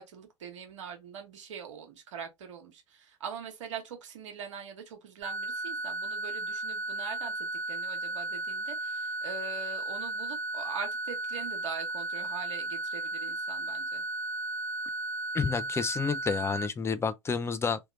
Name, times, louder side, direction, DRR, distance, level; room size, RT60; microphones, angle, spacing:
voice 1, 0.0-14.0, right 6 dB, 70° right, 1.1 m, -42 dB
sound 1, 5.2-16.6, right 2 dB, 45° right, 1.3 m, -35 dB
voice 2, 15.3-17.8, left 5 dB, 15° left, 0.5 m, -29 dB
3.0 x 2.8 x 2.6 m
figure-of-eight pair, 80°, 16 cm